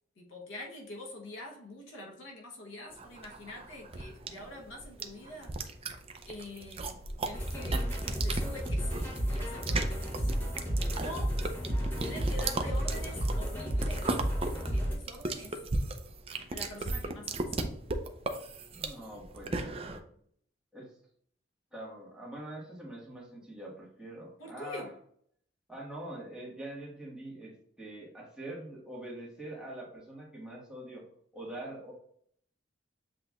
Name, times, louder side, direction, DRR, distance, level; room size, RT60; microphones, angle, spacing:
voice 1, 0.2-5.6 6.3-7.8 8.2-10.3 11.0-11.4 12.0-14.1 14.5-15.6 16.5-17.5 24.4-24.9, left 1 dB, 85° left, 0 dB, 1.0 m, -45 dB
sound 1, 3.0-20.0, right 3 dB, 30° right, 0.5 m, -36 dB
sound 2, 7.3-15.0, equal, 10° left, 1.1 m, -32 dB
voice 2, 18.7-19.8 20.7-20.9 21.7-24.9 25.7-31.0 31.3-31.9, right 1 dB, 5° right, -5 dB, 1.5 m, -44 dB
7.6 x 2.9 x 2.4 m, 0.63 s
head